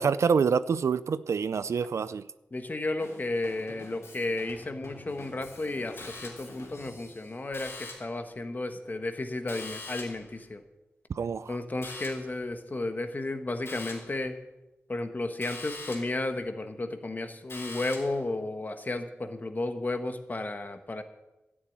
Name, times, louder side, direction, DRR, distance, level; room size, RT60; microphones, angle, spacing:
voice 1, 0.0-2.3 11.1-11.6, right 6 dB, 85° right, 15 dB, 0.4 m, -26 dB
voice 2, 2.5-10.6 11.5-14.4 14.9-21.0, left 2 dB, 40° left, 7 dB, 1.4 m, -33 dB
Drum kit / Drum, 3.0-7.4, left 2 dB, 75° left, 3.2 m, -49 dB
sound 1, 6.0-6.6 7.5-8.2 9.5-10.3 11.8-12.4 13.7-14.2 15.4-16.2 17.5-18.2, left 3 dB, 60° left, 4.2 m, -42 dB
13.0 x 7.4 x 9.5 m, 1.0 s
wide cardioid pair, 90°, 5 cm